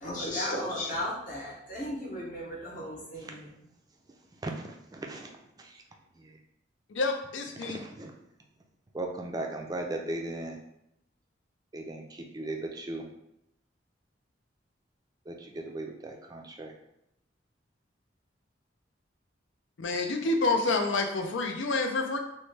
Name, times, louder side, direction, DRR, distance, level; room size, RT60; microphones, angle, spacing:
voice 1, 0.0-3.5, left 1 dB, 45° left, -5 dB, 0.8 m, -35 dB
voice 2, 4.4-5.3 5.6-5.8 6.2-6.4 7.6-8.1 8.9-10.6 11.7-13.1 15.3-16.7, right 2 dB, 20° right, 2 dB, 0.3 m, -37 dB
voice 3, 6.9-7.8 19.8-22.2, left 3 dB, 85° left, 4 dB, 0.5 m, -28 dB
3.1 x 2.1 x 3.2 m, 0.81 s
head